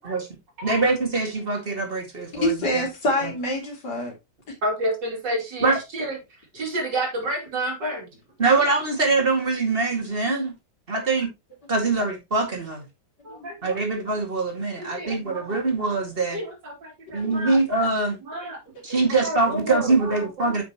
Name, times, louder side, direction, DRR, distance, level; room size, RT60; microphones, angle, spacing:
voice 1, 0.6-2.8 3.2-3.3 5.6-5.8 8.4-10.5 10.9-11.3 11.7-12.8 13.6-16.4 17.1-18.2 18.8-20.6, right 3 dB, 30° right, 2.2 m, -23 dB
voice 2, 2.4-4.1 13.3-13.5 14.9-15.1 17.2-17.3 18.9-19.0, left 1 dB, 65° left, 3.5 m, -26 dB
voice 3, 4.6-6.2 6.5-8.1 13.2-13.8 14.8-15.6 16.3-17.6 18.2-18.6 19.2-20.6, right 1 dB, 70° right, 3.4 m, -30 dB
9.0 x 6.0 x 2.9 m
omnidirectional pair, 2.0 m